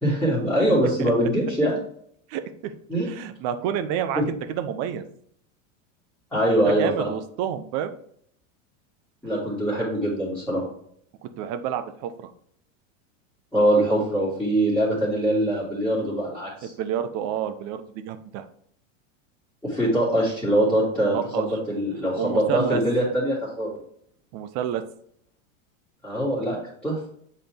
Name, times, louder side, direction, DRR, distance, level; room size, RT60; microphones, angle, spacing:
voice 1, 0.0-1.8 2.9-3.1 4.1-4.2 6.3-7.1 9.2-10.6 13.5-16.7 19.6-23.7 26.0-26.6 26.8-27.1, right 1 dB, ahead, -11 dB, 2.4 m, -23 dB
voice 2, 2.3-2.7 3.0-5.1 6.6-7.9 11.2-12.3 16.6-18.4 20.9-21.5 22.2-22.8 24.3-24.8, right 9 dB, 40° right, 10 dB, 0.7 m, -29 dB
8.0 x 4.2 x 3.4 m, 0.65 s
supercardioid pair, 145°, 40 cm